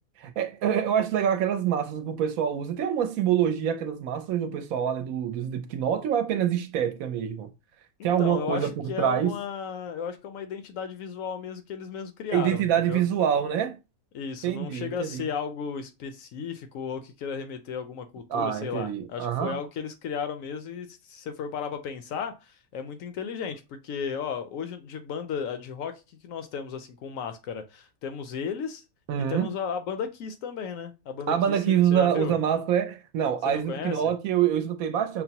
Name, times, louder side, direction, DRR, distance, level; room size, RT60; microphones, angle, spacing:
voice 1, 0.2-7.5 8.0-8.7 9.0-9.4 12.3-13.8 14.4-15.3 18.3-19.6 29.1-29.5 31.3-35.2, right 9 dB, 75° right, 0.9 m, -26 dB
voice 2, 8.0-13.0 14.1-28.8 29.2-32.4 33.4-34.0, left 6 dB, 70° left, 0.9 m, -34 dB
5.8 x 2.0 x 2.8 m
omnidirectional pair, 1.6 m